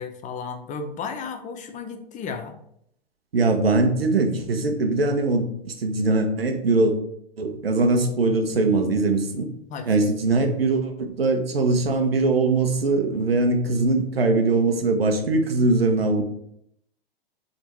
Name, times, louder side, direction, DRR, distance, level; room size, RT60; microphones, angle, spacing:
voice 1, 0.0-2.5 9.7-9.9, left 5 dB, 25° left, 6 dB, 0.9 m, -33 dB
voice 2, 3.3-6.9 7.4-9.5 9.9-16.2, right 3 dB, 75° right, 5 dB, 1.4 m, -21 dB
8.1 x 4.1 x 4.6 m, 0.72 s
figure-of-eight pair, 100°, 30 cm